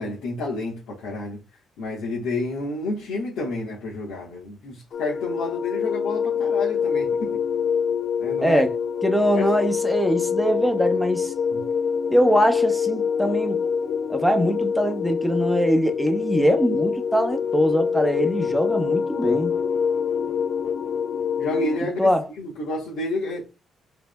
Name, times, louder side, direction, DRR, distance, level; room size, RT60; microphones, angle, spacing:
voice 1, 0.0-1.4 1.8-7.4 8.2-8.6 9.4-9.5 11.5-11.6 21.4-23.5, left 2 dB, 90° left, 1.4 m, -30 dB
sound 1, 4.9-21.8, left 6 dB, 55° left, 0.4 m, -25 dB
voice 2, 8.4-8.7 9.0-11.3 12.1-13.6 14.1-19.5 22.0-22.2, equal, ahead, 0.9 m, -22 dB
4.8 x 3.4 x 2.3 m
cardioid pair, 90°, 0 cm